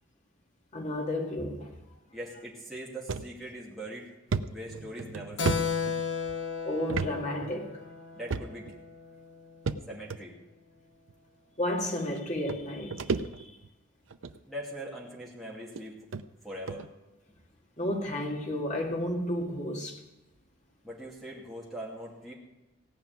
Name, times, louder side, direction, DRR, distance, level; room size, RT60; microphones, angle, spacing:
voice 1, 0.7-1.7 6.6-7.8 11.6-13.0 13.4-13.5 17.8-20.0, left 1 dB, 35° left, 2.0 m, -32 dB
voice 2, 2.1-4.1 4.5-5.7 8.1-8.7 9.9-10.3 14.5-16.1 16.4-16.9 20.8-22.3, right 1 dB, ahead, 2.5 m, -41 dB
sound 1, 3.1-3.3 3.7-3.8 4.3-6.4 6.9-7.1 7.4-7.5 8.3-8.8 9.7-10.2 11.1-11.2 12.2-12.3 12.5-13.7 14.1-14.4 15.2-15.3 15.8-15.9 16.1-16.2 16.7-16.9, right 4 dB, 80° right, 0.6 m, -33 dB
Keyboard (musical), 5.4-9.5, left 6 dB, 65° left, 1.0 m, -34 dB
17.0 x 5.8 x 9.4 m
head